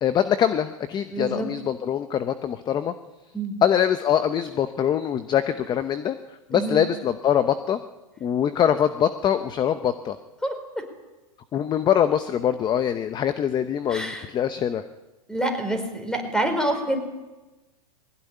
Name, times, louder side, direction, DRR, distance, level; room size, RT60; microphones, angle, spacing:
voice 1, 0.0-2.9 3.6-6.2 6.5-7.8 8.2-10.2 11.5-14.8, left 9 dB, 20° left, 11 dB, 0.9 m, -23 dB
voice 2, 1.1-1.5 3.3-3.6 6.5-6.8 10.4-10.5 13.9-14.2 15.3-17.0, right 1 dB, 5° left, 7 dB, 4.5 m, -27 dB
21.0 x 17.5 x 10.0 m, 1.1 s
hypercardioid pair, 130°, 19 cm